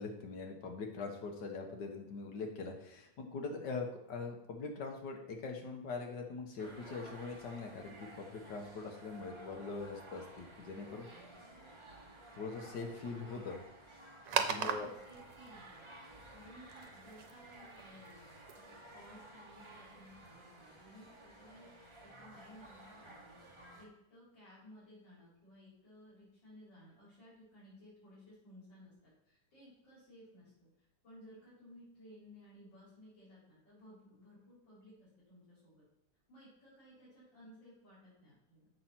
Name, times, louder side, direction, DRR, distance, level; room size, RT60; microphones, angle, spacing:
voice 1, 0.0-11.1 12.3-13.6 14.4-14.9, left 4 dB, 70° left, 3 dB, 1.9 m, -42 dB
sound 1, 6.6-23.9, right 2 dB, 20° right, 1.0 m, -55 dB
sound 2, 14.2-20.3, right 7 dB, 80° right, 1.4 m, -41 dB
voice 2, 14.5-15.9 16.3-18.3 18.5-21.7 22.0-23.4 23.8-30.7 31.0-35.8 36.3-38.7, equal, 90° left, -11 dB, 4.7 m, -58 dB
7.6 x 5.7 x 5.8 m, 0.84 s
omnidirectional pair, 1.9 m